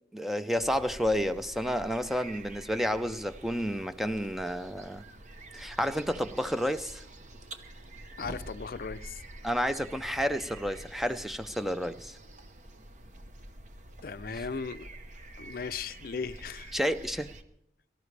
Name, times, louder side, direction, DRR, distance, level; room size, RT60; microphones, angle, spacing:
voice 1, 0.1-5.0 5.5-7.0 9.4-12.2 14.3-14.4 16.7-17.3, equal, ahead, 0.4 m, -30 dB
sound 1, 0.6-17.4, right 1 dB, 40° right, 0.9 m, -47 dB
voice 2, 8.2-9.2 14.0-14.9 15.4-16.7, left 5 dB, 55° left, 0.5 m, -37 dB
23.0 x 13.0 x 3.3 m
head